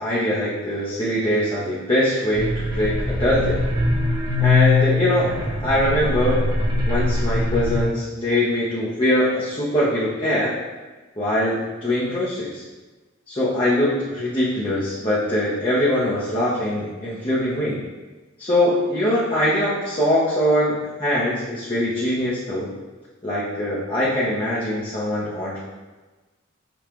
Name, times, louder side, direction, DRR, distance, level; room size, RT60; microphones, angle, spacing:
voice 1, 0.0-3.6 4.4-5.3 5.6-6.4 6.9-10.5 11.2-12.6 13.3-17.8 18.4-22.7 23.2-25.6, left 1 dB, 25° left, -9 dB, 0.8 m, -22 dB
sound 1, 2.3-7.9, left 3 dB, 20° right, 0.5 m, -22 dB
6.9 x 2.4 x 2.9 m, 1.2 s
head